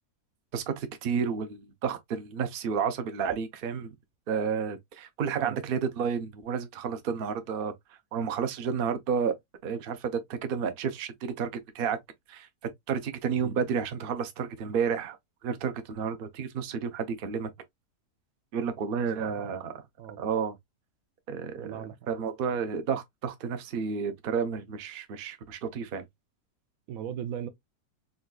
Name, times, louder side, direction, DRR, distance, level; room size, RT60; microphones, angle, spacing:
voice 1, 0.5-3.9 4.3-7.7 8.1-9.3 9.6-11.5 11.7-12.0 12.3-12.5 12.9-15.2 15.4-17.5 18.5-19.8 20.2-20.6 21.3-26.0, right 6 dB, 85° right, 0.4 m, -31 dB
voice 2, 19.1-19.5 20.0-20.2 21.6-22.0 26.9-27.5, right 9 dB, 70° right, 0.9 m, -37 dB
3.8 x 2.3 x 2.2 m
omnidirectional pair, 1.7 m